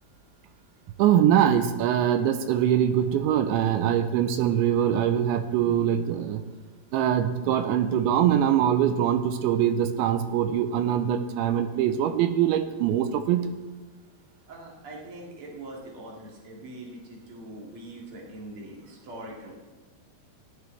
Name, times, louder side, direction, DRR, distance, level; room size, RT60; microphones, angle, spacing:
voice 1, 1.0-6.4 6.9-13.5, right 10 dB, 80° right, 9 dB, 2.8 m, -23 dB
voice 2, 14.5-19.6, right 1 dB, 40° right, -3 dB, 2.2 m, -42 dB
16.5 x 11.0 x 3.3 m, 1.3 s
omnidirectional pair, 5.6 m